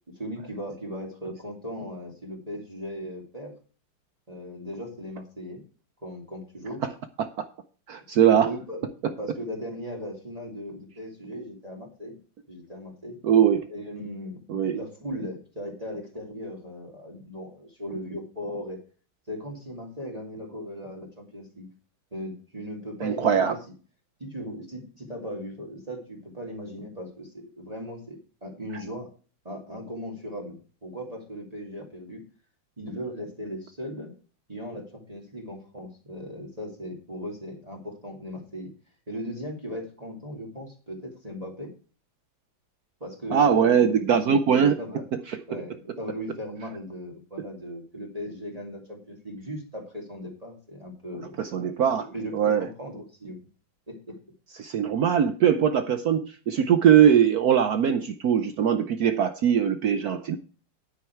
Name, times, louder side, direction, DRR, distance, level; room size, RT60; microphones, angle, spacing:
voice 1, 0.1-3.5 4.3-5.6 6.0-6.8 8.4-8.8 9.2-12.2 12.5-13.2 13.7-18.8 19.3-21.7 22.1-23.6 24.2-29.1 29.4-30.6 30.8-32.2 32.8-34.1 34.5-38.7 39.1-41.7 43.0-44.1 44.8-45.0 45.5-53.5 53.9-54.2, equal, 20° right, -1 dB, 2.7 m, -37 dB
voice 2, 7.9-8.5 13.2-13.6 14.5-14.8 23.0-23.5 43.3-44.8 51.4-52.1 52.3-52.7 54.6-60.4, right 8 dB, 65° right, 10 dB, 1.1 m, -21 dB
9.5 x 9.4 x 4.5 m, 0.38 s
omnidirectional pair, 2.0 m